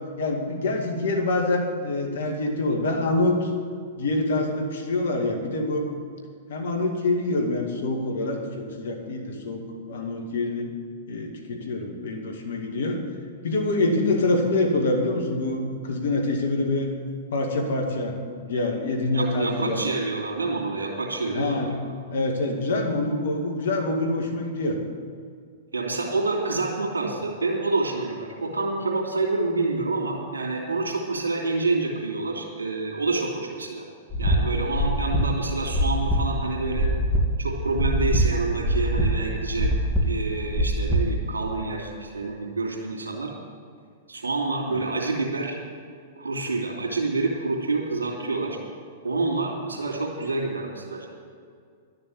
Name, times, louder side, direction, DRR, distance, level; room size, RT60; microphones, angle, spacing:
voice 1, 0.0-3.5 4.0-5.9 6.5-10.7 11.1-13.0 13.4-16.9 17.3-18.1 18.4-19.8 21.3-21.7 22.1-24.8 44.7-44.8, left 2 dB, 70° left, 3 dB, 2.1 m, -26 dB
voice 2, 19.1-21.7 25.7-33.9 34.2-36.9 37.4-39.7 40.0-43.3 44.1-45.6 46.2-48.6 49.0-51.1, right 3 dB, 85° right, 0 dB, 2.8 m, -28 dB
sound 1, 34.1-41.5, equal, 5° left, 2.4 m, -24 dB
12.0 x 6.9 x 9.0 m, 2.1 s
hypercardioid pair, 105°, 0 cm